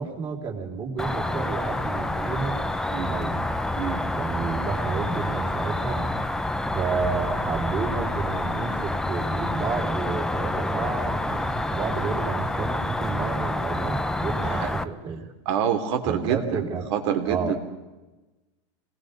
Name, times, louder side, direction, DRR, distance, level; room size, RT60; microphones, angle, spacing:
voice 1, 0.0-2.6 2.9-3.4 4.1-6.1 6.7-15.3 16.0-16.8 17.3-17.6, right 5 dB, 30° right, 0 dB, 3.9 m, -31 dB
Cricket, 1.0-14.8, left 1 dB, 5° left, 0.7 m, -28 dB
voice 2, 15.4-16.6 16.9-17.6, right 8 dB, 65° right, 6 dB, 3.1 m, -26 dB
26.0 x 19.5 x 5.3 m, 1.1 s
supercardioid pair, 145°, 16 cm